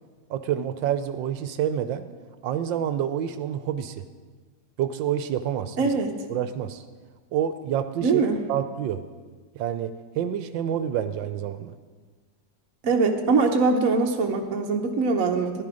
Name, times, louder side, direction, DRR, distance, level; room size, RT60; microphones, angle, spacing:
voice 1, 0.3-2.1 2.4-4.0 4.8-5.9 6.3-6.8 7.3-8.2 8.5-9.0 9.5-11.8, right 9 dB, 85° right, 10 dB, 1.4 m, -28 dB
voice 2, 5.8-6.2 8.0-8.4 12.8-15.6, right 4 dB, 50° right, 2 dB, 1.2 m, -22 dB
14.5 x 11.0 x 4.9 m, 1.4 s
omnidirectional pair, 2.0 m